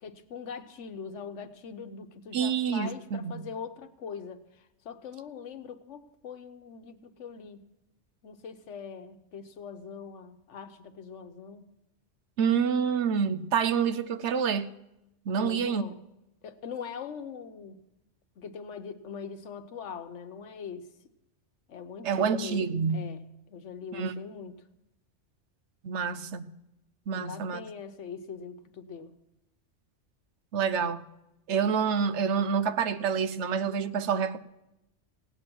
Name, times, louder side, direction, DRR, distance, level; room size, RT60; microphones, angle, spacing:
voice 1, 0.0-7.6 8.2-11.7 15.4-16.0 16.4-17.8 18.4-20.9 21.7-22.6 22.9-23.2 23.5-24.6 27.1-29.1, left 6 dB, 80° left, 1.2 m, -42 dB
voice 2, 2.3-3.5 12.4-14.7 15.3-15.8 22.0-23.1 23.9-24.1 25.8-26.5 27.1-27.6 30.5-31.0 31.5-34.4, right 6 dB, 75° right, 1.0 m, -27 dB
17.0 x 9.2 x 6.2 m
omnidirectional pair, 1.2 m